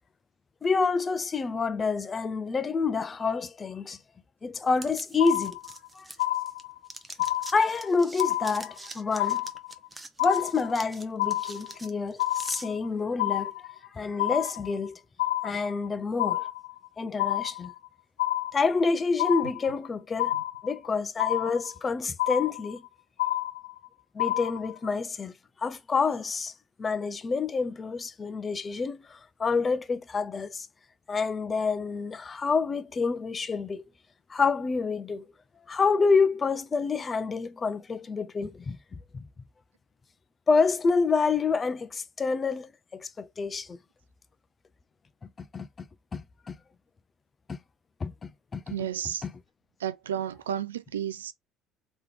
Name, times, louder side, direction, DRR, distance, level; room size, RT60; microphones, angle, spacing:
voice 1, 0.6-4.0 4.4-5.6 5.9-6.1 7.5-9.4 10.2-13.5 13.9-15.0 15.4-16.5 17.0-17.7 18.5-20.3 20.6-22.8 24.1-25.3 25.6-26.5 26.8-30.7 31.1-33.8 34.3-35.2 35.7-39.3 40.5-43.8 45.5-45.7 46.1-46.6 47.5-47.6 48.0-48.7 49.2-49.3, left 4 dB, 30° left, 0.6 m, -28 dB
sound 1, 4.8-6.6 6.9-12.7, right 2 dB, 20° right, 1.0 m, -44 dB
sound 2, 5.2-5.9 6.2-6.9 7.2-7.9 8.2-8.9 9.2-9.9 10.2-10.9 11.2-11.9 12.2-12.9 13.2-13.9 14.2-14.9 15.2-15.9 16.2-16.9 17.2-17.9 18.2-18.9 19.2-19.9 20.2-20.9 21.2-21.9 22.2-22.9 23.2-23.9 24.2-24.9, left 15 dB, 85° left, 0.4 m, -29 dB
voice 2, 48.7-49.2 49.8-51.3, right 9 dB, 90° right, 0.4 m, -32 dB
3.3 x 3.0 x 3.6 m
hypercardioid pair, 65°, 0 cm